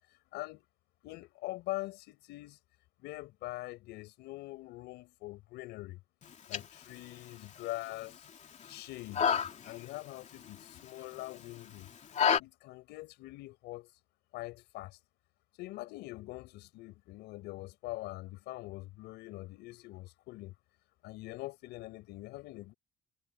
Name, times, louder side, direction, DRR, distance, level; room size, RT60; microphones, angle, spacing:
voice 1, 0.3-0.6 1.0-2.6 3.0-6.0 6.5-8.3 8.7-9.3 9.6-11.9 12.4-13.9 14.3-15.0 15.6-20.5 21.0-22.7, left 19 dB, 90° left, 6.2 m, -43 dB
sound 1, 6.2-12.4, left 7 dB, 45° left, 2.8 m, -34 dB
cardioid pair, 110°, 17 cm